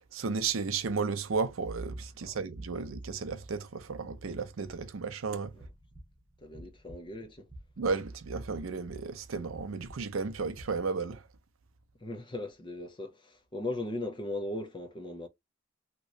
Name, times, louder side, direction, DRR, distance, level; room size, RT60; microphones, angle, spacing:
voice 1, 0.1-5.5 7.8-11.3, right 4 dB, 70° right, 0.6 m, -33 dB
sound 1, 5.5-10.6, right 1 dB, 5° right, 1.2 m, -52 dB
voice 2, 6.4-7.5 12.0-15.3, left 2 dB, 25° left, 0.7 m, -38 dB
3.1 x 3.0 x 2.7 m
head